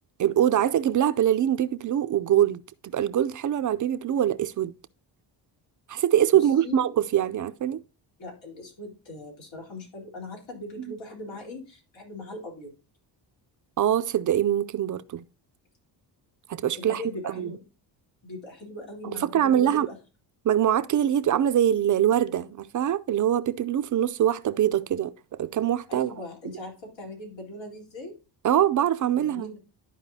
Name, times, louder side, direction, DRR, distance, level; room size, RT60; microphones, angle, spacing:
voice 1, 0.2-2.6 2.9-4.7 5.9-7.8 13.8-15.2 16.5-17.0 17.2-17.5 19.0-19.9 20.4-26.1 28.4-29.5, right 10 dB, 45° right, 0.5 m, -23 dB
voice 2, 6.3-6.8 8.2-12.7 16.8-17.6 18.2-20.0 25.9-28.2 29.1-29.6, left 1 dB, 85° left, 3.8 m, -40 dB
12.5 x 4.8 x 2.7 m
cardioid pair, 110°, 44 cm